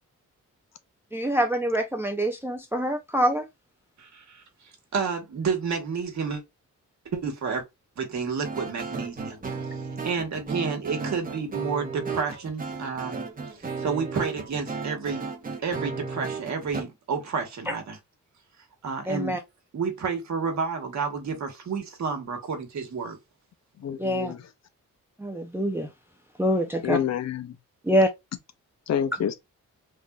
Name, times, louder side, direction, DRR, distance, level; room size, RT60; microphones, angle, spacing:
voice 1, 1.1-3.5 17.7-17.8 19.1-19.4 24.0-24.3 25.2-25.9 26.4-27.0 27.8-28.1, equal, 10° right, 0.5 m, -25 dB
voice 2, 4.0-4.4 4.9-6.4 7.1-7.6 8.0-9.4 10.0-13.3 13.8-15.2 15.6-18.0 18.8-19.4 19.7-23.2, right 5 dB, 65° right, 1.3 m, -30 dB
sound 1, 8.4-16.8, right 5 dB, 25° right, 0.9 m, -34 dB
voice 3, 23.8-24.4 26.8-27.6 28.9-29.3, left 9 dB, 60° left, 0.6 m, -28 dB
3.6 x 2.6 x 2.3 m
wide cardioid pair, 120°, 31 cm